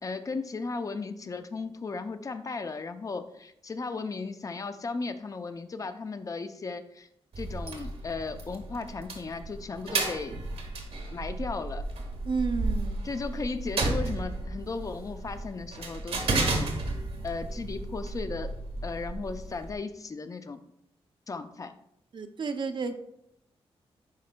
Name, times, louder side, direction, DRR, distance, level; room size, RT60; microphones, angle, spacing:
voice 1, 0.0-7.1 7.4-10.4 11.1-11.8 13.0-16.7 17.2-18.5 18.8-20.6 21.3-21.7, left 4 dB, 30° left, 10 dB, 0.5 m, -36 dB
sound 1, 7.3-19.7, right 2 dB, 70° right, 1.1 m, -33 dB
voice 2, 12.2-13.0 22.1-23.0, right 4 dB, 50° right, 8 dB, 0.5 m, -31 dB
10.5 x 4.2 x 2.2 m, 0.77 s
cardioid pair, 100°, 11 cm